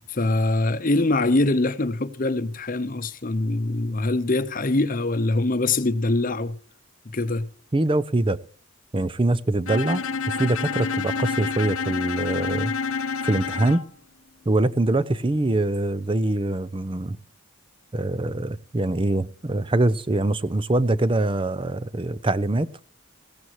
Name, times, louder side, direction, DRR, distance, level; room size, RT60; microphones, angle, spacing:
voice 1, 0.1-6.6 7.0-7.5, left 2 dB, 40° left, 0.9 m, -23 dB
voice 2, 7.7-8.4 8.9-12.7 13.2-13.8 14.5-17.2 17.9-22.7, right 2 dB, 25° right, 0.5 m, -24 dB
Bowed string instrument, 9.7-13.9, left 5 dB, 75° left, 0.9 m, -28 dB
17.5 x 16.0 x 3.0 m
head